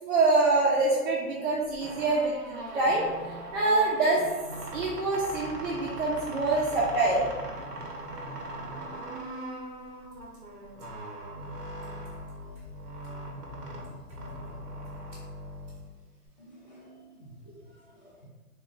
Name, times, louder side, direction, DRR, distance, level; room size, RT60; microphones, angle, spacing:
voice 1, 0.0-3.1 3.5-4.2 4.7-7.3, right 3 dB, 50° right, -6 dB, 0.7 m, -25 dB
sound 1, 1.6-16.3, right 1 dB, 90° right, 1.0 m, -40 dB
voice 2, 16.4-18.3, right 1 dB, 30° left, -3 dB, 0.4 m, -52 dB
3.5 x 3.3 x 2.4 m, 1.2 s
hypercardioid pair, 160°, 46 cm